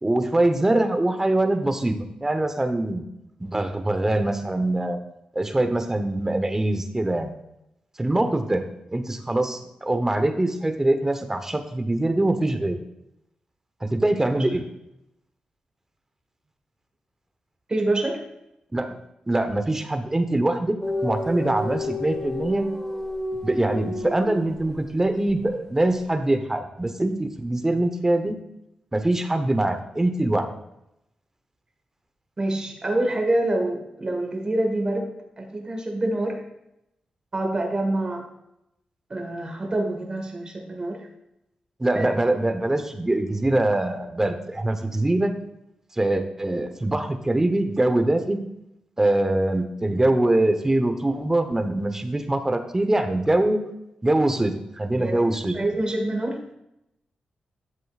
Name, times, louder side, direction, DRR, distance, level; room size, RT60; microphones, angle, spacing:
voice 1, 0.0-3.1 3.4-5.0 5.3-7.3 8.0-8.6 8.9-12.8 13.8-14.7 18.7-19.0 19.3-22.7 23.4-28.4 28.9-30.5 41.8-45.3 45.9-48.4 49.0-53.6 54.0-55.6, right 1 dB, 20° right, 8 dB, 0.9 m, -23 dB
voice 2, 17.7-18.2 32.4-35.1 35.4-36.4 37.3-38.2 39.1-41.1 41.9-42.1 55.0-55.2 55.5-56.4, right 1 dB, 35° right, 2 dB, 1.6 m, -26 dB
sound 1, 20.8-24.8, left 2 dB, 10° left, 1.8 m, -31 dB
11.0 x 7.4 x 2.4 m, 0.84 s
cardioid pair, 70°, 2 cm